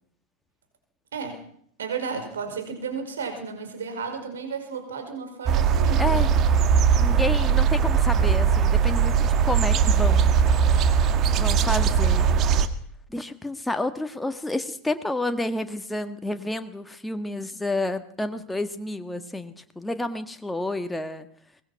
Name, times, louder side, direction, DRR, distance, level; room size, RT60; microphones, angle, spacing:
voice 1, 1.1-1.4 1.8-6.3, right 5 dB, 65° right, 6 dB, 5.3 m, -33 dB
sound 1, 5.5-12.7, right 7 dB, 30° right, 1.8 m, -20 dB
voice 2, 5.9-6.3 7.0-10.3 11.4-12.3 13.1-21.3, left 2 dB, 5° left, 8 dB, 1.7 m, -30 dB
23.5 x 20.5 x 5.9 m, 0.63 s
figure-of-eight pair, 90°, 0 cm